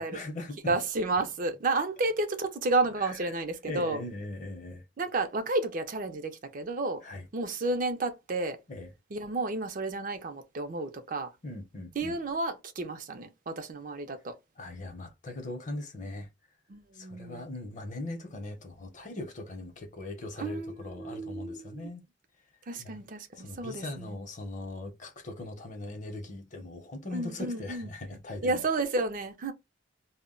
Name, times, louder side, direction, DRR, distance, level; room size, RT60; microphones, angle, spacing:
voice 1, 0.0-0.8 3.0-4.8 7.0-7.3 8.7-8.9 11.4-12.2 14.6-16.3 16.9-22.0 22.8-23.0 23.4-28.7, left 2 dB, 40° left, 0.7 m, -40 dB
voice 2, 0.7-4.0 5.0-7.0 7.3-8.6 9.1-11.3 12.0-14.4 16.7-17.4 20.4-21.8 22.7-24.1 27.1-27.9 28.4-29.5, right 2 dB, 45° right, 0.5 m, -31 dB
2.2 x 2.0 x 3.6 m
head